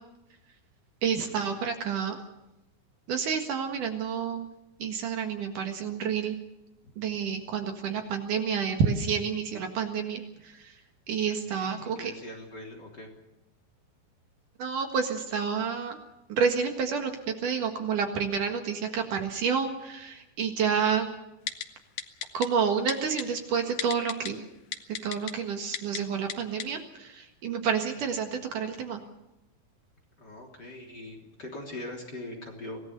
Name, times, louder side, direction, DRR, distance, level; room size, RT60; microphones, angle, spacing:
voice 1, 1.0-2.2 3.1-4.5 4.8-6.4 7.0-10.8 11.1-12.1 14.6-16.0 16.3-21.1 22.3-24.5 25.0-29.0, right 6 dB, 60° right, 5 dB, 3.1 m, -29 dB
voice 2, 11.4-13.1 28.0-28.1 30.2-32.8, left 1 dB, 30° left, 3 dB, 3.6 m, -42 dB
Typing, 21.5-21.6 22.0-22.5 22.9-23.2 23.8-24.3 24.7-25.3 25.7-26.0 26.3-26.4 26.6-26.7, left 9 dB, 60° left, 1.8 m, -32 dB
25.5 x 17.5 x 6.8 m, 0.92 s
omnidirectional pair, 4.3 m